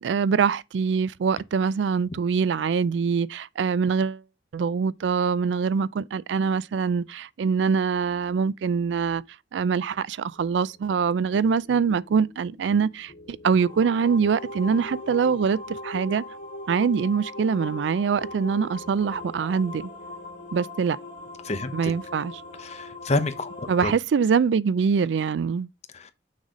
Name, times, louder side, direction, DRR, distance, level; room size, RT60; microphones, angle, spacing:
voice 1, 0.0-4.2 4.5-9.2 9.5-16.2 16.7-19.8 20.5-21.0 21.7-22.3 23.7-25.7, right 6 dB, 75° right, 0.4 m, -24 dB
sound 1, 10.3-23.8, left 1 dB, 90° left, 2.5 m, -40 dB
voice 2, 21.4-21.9 22.6-23.9 25.9-26.1, left 2 dB, 35° left, 0.8 m, -29 dB
6.4 x 4.0 x 4.9 m
head